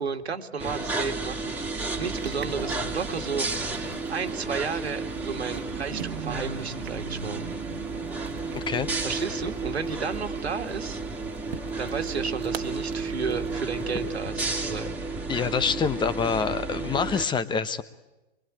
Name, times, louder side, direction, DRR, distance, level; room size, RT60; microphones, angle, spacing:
voice 1, 0.0-1.6 2.0-3.7 4.1-7.5 9.0-11.0 11.8-15.0, right 5 dB, 80° right, 5 dB, 2.2 m, -32 dB
sound 1, 0.6-17.3, right 3 dB, 5° right, 2.4 m, -32 dB
sound 2, 2.1-14.2, right 7 dB, 65° right, 1.6 m, -42 dB
voice 2, 8.5-8.9 15.3-17.8, left 6 dB, 15° left, 14 dB, 1.0 m, -26 dB
25.0 x 23.0 x 8.7 m, 1.1 s
hypercardioid pair, 115°, 32 cm